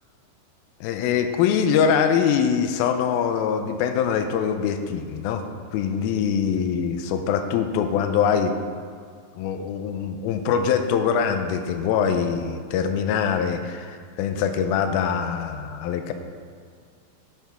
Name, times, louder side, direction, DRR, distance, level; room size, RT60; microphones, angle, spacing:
voice 1, 0.8-5.4 5.7-8.5 9.4-16.1, left 7 dB, 80° left, 7 dB, 2.4 m, -23 dB
10.5 x 5.8 x 5.6 m, 2.1 s
omnidirectional pair, 4.6 m